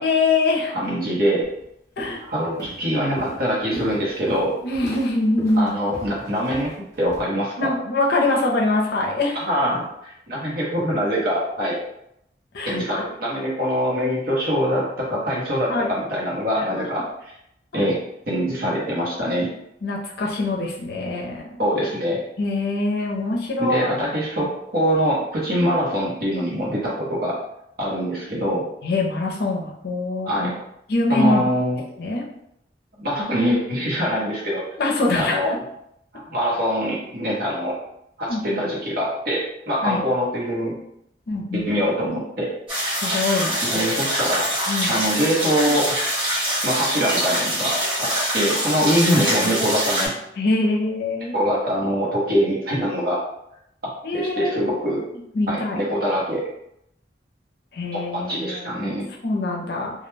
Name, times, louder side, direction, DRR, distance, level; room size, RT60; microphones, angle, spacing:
voice 1, 0.0-0.8 2.0-2.2 4.6-5.7 7.6-9.4 12.5-13.0 15.7-15.9 16.6-17.0 17.7-17.8 19.8-21.6 22.4-23.9 28.8-30.5 30.9-31.4 32.0-32.2 34.8-35.6 38.3-38.6 39.8-40.0 41.3-41.7 42.9-43.6 44.7-44.9 49.4-49.5 50.4-51.4 54.0-55.1 55.3-55.8 57.7-59.9, left 2 dB, 60° left, -1 dB, 0.5 m, -24 dB
voice 2, 0.7-1.5 2.2-4.6 5.6-6.7 7.0-7.7 9.4-11.8 12.6-17.3 17.7-18.0 18.3-19.5 21.6-22.2 23.6-27.4 27.8-28.6 30.2-30.5 31.1-31.8 33.0-34.6 35.1-35.5 36.1-37.8 38.2-40.7 41.5-42.5 43.6-44.6 44.9-46.0 46.6-50.1 51.3-53.2 54.1-55.0 55.5-56.4 57.9-58.0 58.3-59.1, equal, 55° right, -5 dB, 0.9 m, -23 dB
Walk footsteps, 1.4-1.6 2.0-2.3 2.6-7.2, equal, 15° left, 0.6 m, -37 dB
sound 1, 42.7-50.1, equal, 30° right, 1.3 m, -24 dB
2.2 x 2.1 x 3.1 m, 0.79 s
head